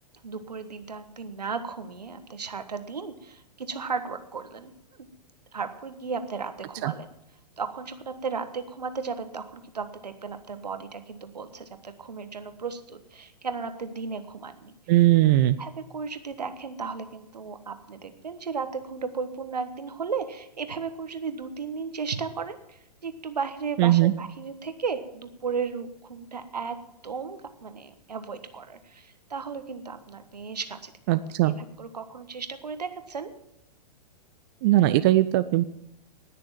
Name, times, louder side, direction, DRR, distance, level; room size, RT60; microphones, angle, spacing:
voice 1, 0.2-5.1 5.5-7.1 7.6-14.7 15.6-26.8 27.0-31.2 31.4-33.3, right 5 dB, 70° right, 10 dB, 1.5 m, -35 dB
voice 2, 14.9-15.6 23.8-24.1 31.1-31.5 34.6-35.6, right 15 dB, 35° right, 13 dB, 0.5 m, -19 dB
19.0 x 6.8 x 7.4 m, 0.81 s
figure-of-eight pair, 110°, 21 cm